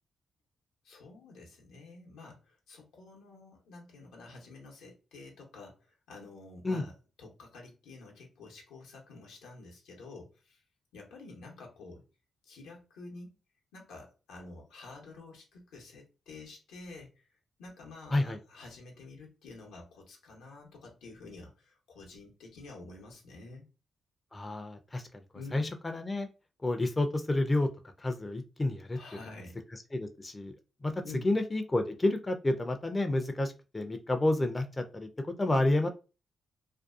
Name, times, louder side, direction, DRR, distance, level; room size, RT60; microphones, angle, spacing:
voice 1, 0.8-6.9 7.2-10.6 10.9-12.0 12.4-13.3 13.7-17.3 17.6-23.7 25.3-25.7 28.9-29.6 31.0-31.3, left 3 dB, 85° left, 0.7 m, -49 dB
voice 2, 24.3-25.0 25.5-26.3 26.6-27.7 28.0-29.0 29.9-30.5 30.8-35.1 35.4-35.9, left 2 dB, 30° left, 0.4 m, -30 dB
2.5 x 2.2 x 2.3 m
supercardioid pair, 45°, 0 cm